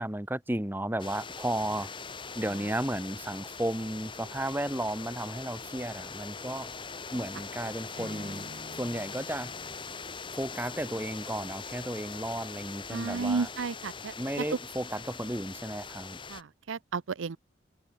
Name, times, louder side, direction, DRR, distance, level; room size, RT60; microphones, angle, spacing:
voice 1, 0.0-1.9 2.4-6.7 7.1-8.5 8.7-9.5 10.4-13.5 14.2-16.2, right 1 dB, 10° right, 1.2 m, -34 dB
sound 1, 1.0-16.4, left 5 dB, 25° left, 1.7 m, -42 dB
sound 2, 1.9-14.2, right 1 dB, 35° right, 7.1 m, -65 dB
Acoustic guitar / Strum, 8.0-11.0, right 1 dB, 50° right, 2.1 m, -49 dB
voice 2, 12.9-14.1 16.3-17.4, right 4 dB, 90° right, 0.6 m, -33 dB
head